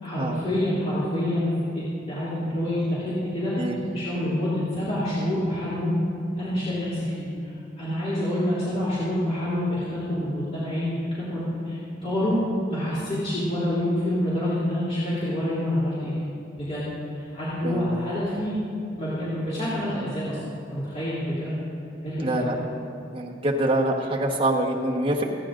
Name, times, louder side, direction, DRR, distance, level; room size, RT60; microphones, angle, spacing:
voice 1, 0.0-3.5 3.9-5.9 6.4-12.4 12.7-16.3 16.6-18.6 19.0-21.5 22.0-22.5, left 1 dB, 35° left, -12 dB, 2.9 m, -27 dB
voice 2, 17.6-18.0 22.2-22.6 23.1-25.2, right 1 dB, 30° right, -1 dB, 1.2 m, -25 dB
29.0 x 9.8 x 2.6 m, 2.5 s
head